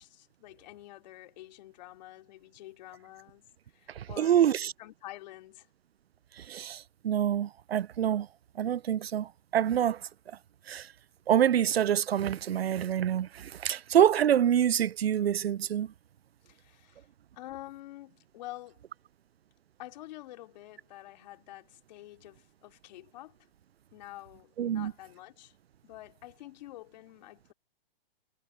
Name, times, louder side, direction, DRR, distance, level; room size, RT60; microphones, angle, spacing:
voice 1, 0.0-5.7 16.4-17.1 17.3-18.8 19.8-23.4 23.9-25.5 25.8-27.5, left 16 dB, 45° left, 2.8 m, -48 dB
voice 2, 4.0-4.7 6.5-8.3 8.6-10.0 10.7-10.9 11.3-15.9 24.6-24.9, right 10 dB, 80° right, 0.6 m, -26 dB
hypercardioid pair, 140°, 30 cm